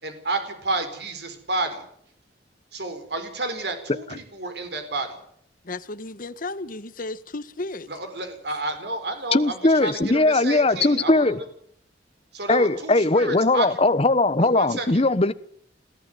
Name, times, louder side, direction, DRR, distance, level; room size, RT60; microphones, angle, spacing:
voice 1, 0.0-1.8 2.7-5.1 7.9-11.4 12.3-13.7 14.4-15.0, right 2 dB, 65° right, 4.5 m, -30 dB
voice 2, 5.6-7.9, left 2 dB, 50° left, 1.2 m, -34 dB
voice 3, 9.3-11.4 12.5-15.3, left 2 dB, 35° left, 1.1 m, -19 dB
21.5 x 15.0 x 9.1 m
head